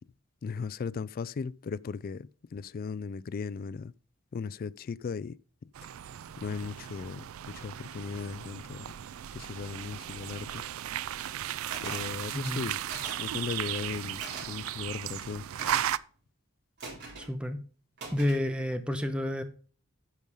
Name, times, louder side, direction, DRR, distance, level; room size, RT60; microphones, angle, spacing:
voice 1, 0.4-3.9 4.3-5.4 6.4-9.0 9.3-10.6 11.8-12.8 13.2-15.4, left 5 dB, 45° left, 0.3 m, -37 dB
sound 1, 5.7-16.0, right 11 dB, 85° right, 0.4 m, -36 dB
sound 2, 11.7-12.1 12.9-13.3 14.2-14.5 15.6-16.0 16.8-17.3 18.0-18.4, right 3 dB, 55° right, 3.6 m, -41 dB
voice 2, 12.3-12.6 17.2-17.6 18.1-19.4, left 1 dB, 5° right, 1.0 m, -30 dB
9.8 x 5.4 x 5.4 m
head